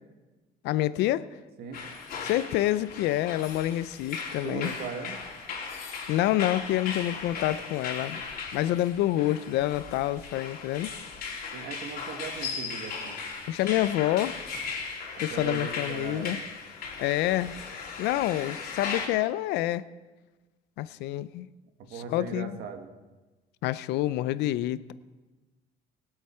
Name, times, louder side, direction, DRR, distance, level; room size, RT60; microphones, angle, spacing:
voice 1, 0.6-1.3 2.2-4.7 6.1-8.2 8.5-10.9 13.5-14.4 15.2-16.4 17.0-17.6 18.0-19.8 20.8-21.5 21.9-22.6 23.6-24.9, left 14 dB, 85° left, 16 dB, 0.5 m, -27 dB
sound 1, 1.7-19.1, left 5 dB, 65° left, 3.2 m, -37 dB
voice 2, 4.4-5.2 11.5-13.2 15.2-16.5 21.8-22.9, right 6 dB, 75° right, 6 dB, 1.6 m, -39 dB
21.5 x 8.0 x 4.4 m, 1.2 s
cardioid pair, 110°, 17 cm